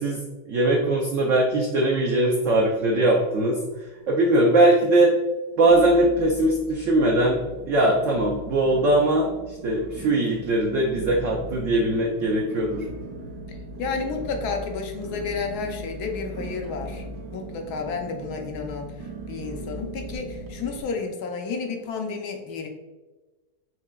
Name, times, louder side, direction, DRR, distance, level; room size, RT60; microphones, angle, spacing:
voice 1, 0.0-5.1 5.6-12.9, right 1 dB, 80° right, 0 dB, 0.7 m, -21 dB
sound 1, 2.5-3.4 3.7-4.3 4.8-4.9 5.6-20.8, right 1 dB, 60° right, 1.0 m, -39 dB
voice 2, 13.8-17.0 17.3-22.7, left 4 dB, 75° left, 3 dB, 1.0 m, -31 dB
4.7 x 3.1 x 2.2 m, 1.2 s
omnidirectional pair, 1.8 m